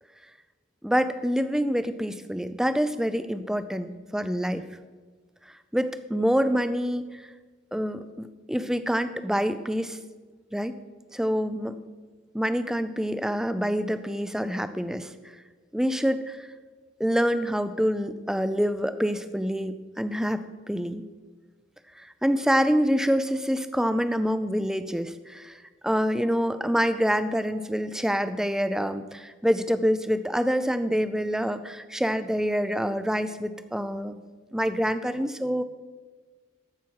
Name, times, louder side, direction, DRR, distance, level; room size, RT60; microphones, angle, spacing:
voice 1, 0.8-4.6 5.7-7.2 7.7-10.0 10.5-10.7 11.1-11.8 12.3-15.1 15.7-16.5 17.0-21.0 22.0-34.2 34.5-35.6, equal, 5° right, 11 dB, 0.4 m, -26 dB
14.5 x 5.9 x 4.7 m, 1.4 s
head